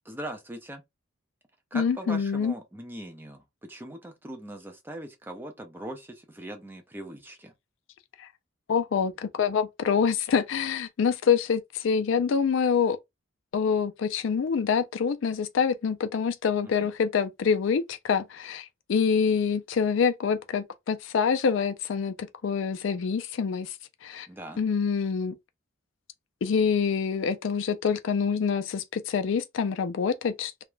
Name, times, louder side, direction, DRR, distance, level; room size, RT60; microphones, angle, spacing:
voice 1, 0.1-0.8 1.7-7.5 16.6-16.9 24.3-24.6, right 1 dB, 10° right, 0.5 m, -40 dB
voice 2, 1.7-2.5 8.2-8.3 8.7-13.0 13.5-23.8 24.0-24.3 24.6-25.4 26.4-30.6, left 6 dB, 65° left, 0.4 m, -26 dB
2.4 x 2.2 x 3.0 m
head